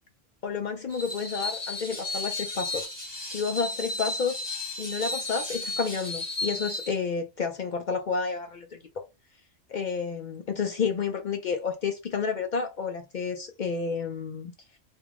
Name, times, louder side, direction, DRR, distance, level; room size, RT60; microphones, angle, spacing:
voice 1, 0.4-2.9 3.3-4.4 4.8-8.8 9.7-14.5, left 5 dB, 60° left, 0.5 m, -30 dB
Screech, 0.9-7.0, left 2 dB, 20° left, 1.1 m, -34 dB
2.9 x 2.7 x 3.5 m
omnidirectional pair, 1.3 m